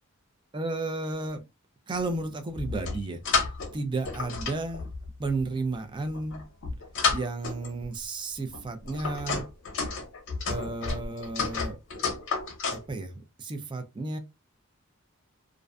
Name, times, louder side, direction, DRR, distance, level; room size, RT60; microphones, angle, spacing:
voice 1, 0.5-1.4 1.9-3.2 3.7-4.9 5.2-6.4 7.1-9.4 10.5-11.8 12.7-14.2, right 3 dB, 20° right, 0.4 m, -33 dB
sound 1, 2.5-3.7 4.0-5.4 6.1-7.9 8.5-12.9, left 4 dB, 60° left, 0.7 m, -31 dB
2.4 x 2.1 x 2.4 m
head